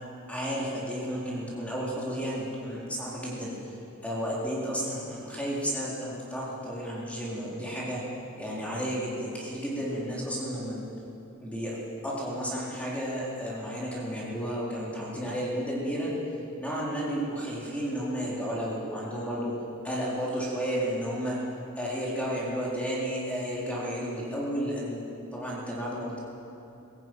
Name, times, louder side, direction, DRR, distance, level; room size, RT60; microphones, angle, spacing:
voice 1, 0.3-3.5 4.0-8.0 8.4-10.9 11.4-11.8 12.0-16.1 16.6-19.5 19.8-21.4 21.8-25.0 25.3-26.2, equal, 5° left, -6 dB, 4.2 m, -32 dB
21.0 x 16.0 x 9.3 m, 3.0 s
head